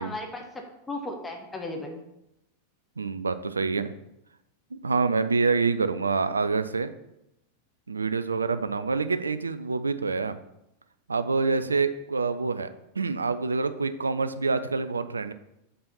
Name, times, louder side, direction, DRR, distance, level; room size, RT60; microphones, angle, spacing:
voice 1, 0.0-2.0, left 2 dB, 15° left, 3 dB, 1.1 m, -36 dB
voice 2, 3.0-3.9 4.7-6.9 7.9-10.4 11.1-12.7 13.0-15.3, right 4 dB, 75° right, 11 dB, 0.4 m, -26 dB
6.6 x 5.5 x 4.0 m, 0.85 s
figure-of-eight pair, 90°, 0 cm